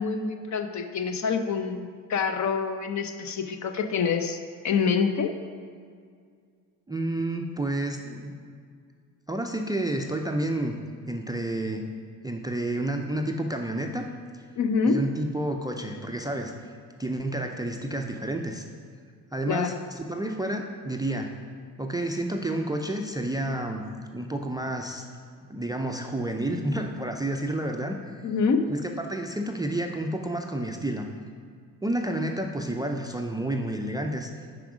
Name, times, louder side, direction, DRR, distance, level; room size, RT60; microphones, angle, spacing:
voice 1, 0.0-4.4 4.6-5.3 14.6-15.0 19.5-19.8 28.2-28.7, left 5 dB, 40° left, 6 dB, 0.7 m, -26 dB
voice 2, 6.9-8.4 9.3-10.8 11.1-11.8 12.2-14.1 14.9-16.5 17.0-18.7 19.3-21.3 21.8-23.8 24.1-25.1 25.5-28.0 28.7-31.1 31.8-34.3, right 1 dB, 10° right, 4 dB, 0.4 m, -30 dB
5.8 x 5.0 x 5.0 m, 2.1 s
hypercardioid pair, 60°, 43 cm